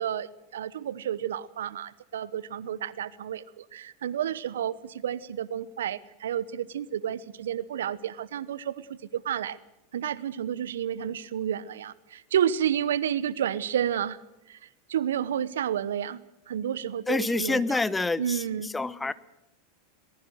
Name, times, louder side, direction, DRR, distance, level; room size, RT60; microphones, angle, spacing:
voice 1, 0.0-9.6 9.9-14.2 14.5-14.6 14.9-17.8 18.2-18.7, right 9 dB, 75° right, 20 dB, 0.9 m, -30 dB
voice 2, 17.1-19.1, left 3 dB, 10° left, 17 dB, 1.0 m, -27 dB
22.5 x 20.5 x 6.3 m, 0.90 s
hypercardioid pair, 90°, 0 cm